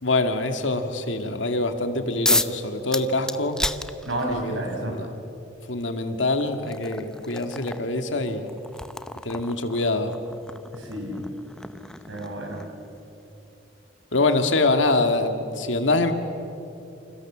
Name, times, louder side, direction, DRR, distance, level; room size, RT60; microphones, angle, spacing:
voice 1, 0.0-3.6 4.3-4.6 4.9-5.1 5.7-8.5 9.2-10.1 14.1-16.1, left 2 dB, 80° left, 7 dB, 2.2 m, -24 dB
sound 1, 2.2-2.6 2.9-4.5 5.6-5.7 6.2-12.9, left 1 dB, 5° left, 0.7 m, -31 dB
voice 2, 4.0-4.9 10.7-11.3 12.1-12.6, right 1 dB, 85° right, 1 dB, 6.6 m, -31 dB
29.0 x 27.5 x 7.4 m, 2.9 s
head